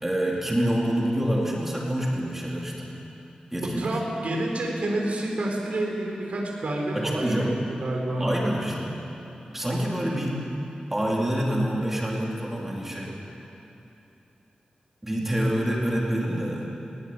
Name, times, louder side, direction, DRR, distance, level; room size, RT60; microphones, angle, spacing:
voice 1, 0.0-2.9 3.5-3.9 6.9-7.5 8.2-9.0 9.5-10.4 10.9-13.1 15.0-16.7, equal, 10° right, -4 dB, 4.2 m, -26 dB
voice 2, 3.8-7.5 7.8-8.5, right 1 dB, 65° right, -1 dB, 4.2 m, -28 dB
20.0 x 18.0 x 9.8 m, 2.9 s
wide cardioid pair, 110°, 3 cm